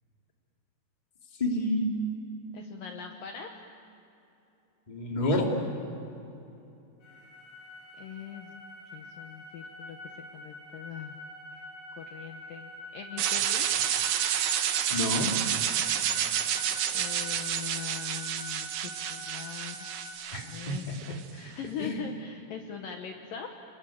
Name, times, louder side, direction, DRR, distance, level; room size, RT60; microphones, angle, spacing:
voice 1, 1.4-1.9 4.9-5.5 14.9-15.3 20.3-20.9 21.8-22.0, left 1 dB, 15° left, 0 dB, 2.1 m, -29 dB
voice 2, 2.5-3.7 8.0-8.5 8.9-11.1 11.5-11.6 12.0-13.8 16.9-19.9 20.4-23.6, left 7 dB, 65° left, 3 dB, 2.4 m, -42 dB
sound 1, 7.0-20.1, left 1 dB, 50° left, 7.7 m, -46 dB
sound 2, 13.2-21.2, right 9 dB, 85° right, 1.6 m, -30 dB
30.0 x 21.0 x 8.8 m, 2.8 s
omnidirectional pair, 5.0 m